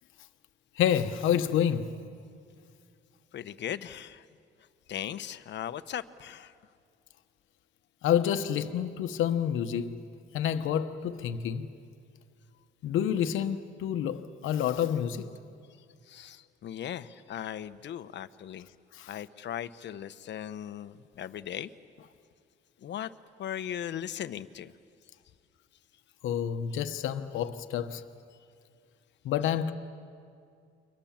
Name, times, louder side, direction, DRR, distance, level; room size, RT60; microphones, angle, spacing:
voice 1, 0.8-1.9 8.0-9.9 10.3-11.7 12.8-15.3 18.9-19.1 26.2-28.0 29.2-29.7, left 9 dB, 85° left, 1.1 m, -28 dB
voice 2, 3.3-4.2 4.9-6.5 16.1-18.7 19.1-21.7 22.8-23.1 23.4-24.7 29.4-29.5, left 10 dB, 65° left, 0.9 m, -38 dB
29.5 x 24.0 x 7.4 m
cardioid pair, 90°, 20 cm